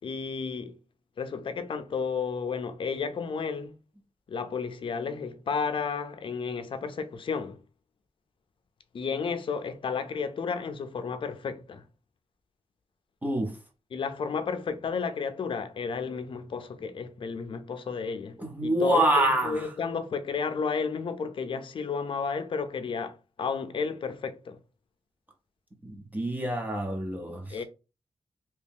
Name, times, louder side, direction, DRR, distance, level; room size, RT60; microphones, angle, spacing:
voice 1, 0.0-0.7 1.2-3.7 4.3-7.6 8.9-11.8 13.9-24.6 27.5-27.6, left 5 dB, 55° left, 0.5 m, -32 dB
voice 2, 13.2-13.5 18.4-19.7 25.8-27.6, right 1 dB, 15° right, 0.6 m, -27 dB
2.9 x 2.7 x 3.5 m
wide cardioid pair, 150°, 10 cm